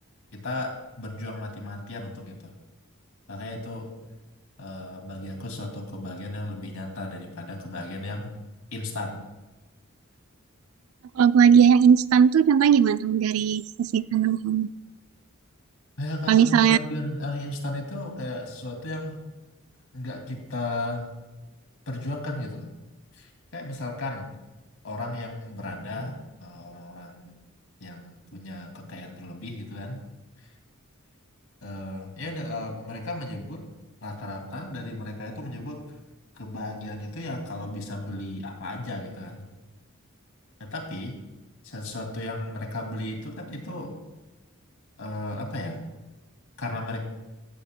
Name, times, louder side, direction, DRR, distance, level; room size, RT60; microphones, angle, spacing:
voice 1, 0.3-2.5 3.3-3.9 4.6-8.3 8.7-9.3 16.0-19.2 19.9-21.1 21.9-22.7 23.1-24.4 24.8-27.3 27.8-30.0 31.6-33.7 34.0-35.9 36.3-39.5 40.6-41.2 41.6-44.0 45.0-45.8 46.6-47.0, left 1 dB, 80° left, 2 dB, 2.5 m, -35 dB
voice 2, 11.2-14.7 16.3-16.8, right 8 dB, 80° right, 15 dB, 0.4 m, -18 dB
16.0 x 14.0 x 2.2 m, 1.1 s
head